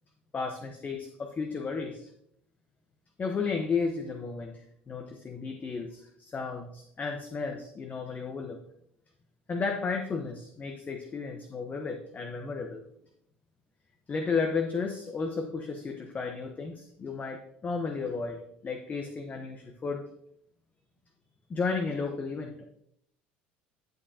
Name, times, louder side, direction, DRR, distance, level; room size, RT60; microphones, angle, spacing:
voice 1, 0.3-2.1 3.2-8.6 9.5-12.8 14.1-20.0 21.5-22.6, left 4 dB, 30° left, 4 dB, 1.0 m, -33 dB
11.0 x 7.3 x 2.8 m, 0.72 s
hypercardioid pair, 70°, 5 cm